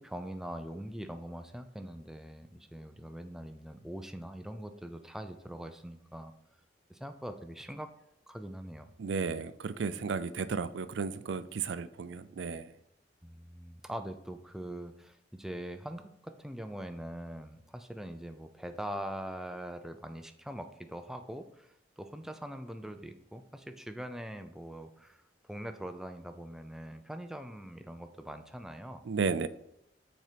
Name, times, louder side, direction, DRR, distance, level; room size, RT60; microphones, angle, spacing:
voice 1, 0.0-6.3 6.9-7.9 8.3-8.9 13.2-29.0, equal, 5° right, 7 dB, 0.4 m, -42 dB
voice 2, 9.0-12.7 29.1-29.5, right 5 dB, 80° right, 14 dB, 0.4 m, -33 dB
6.4 x 4.4 x 5.1 m, 0.77 s
head